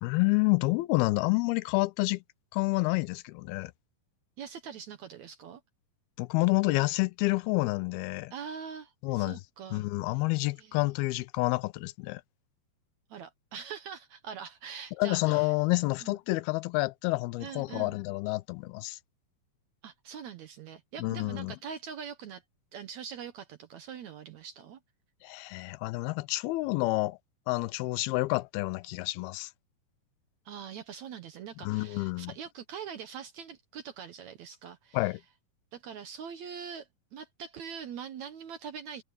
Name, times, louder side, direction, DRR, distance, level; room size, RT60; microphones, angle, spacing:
voice 1, 0.0-2.2 2.5-3.7 6.2-8.3 9.0-9.4 9.7-12.2 15.0-19.0 21.0-21.6 25.2-27.2 27.5-29.5 31.6-32.3 34.9-35.2, left 23 dB, 90° left, 2.6 m, -29 dB
voice 2, 4.4-5.6 8.3-9.9 10.6-10.9 13.1-15.5 16.0-16.2 17.4-18.0 19.8-22.4 22.7-24.8 30.5-35.1 35.7-39.0, right 7 dB, 65° right, 1.9 m, -43 dB
omnidirectional pair, 4.3 m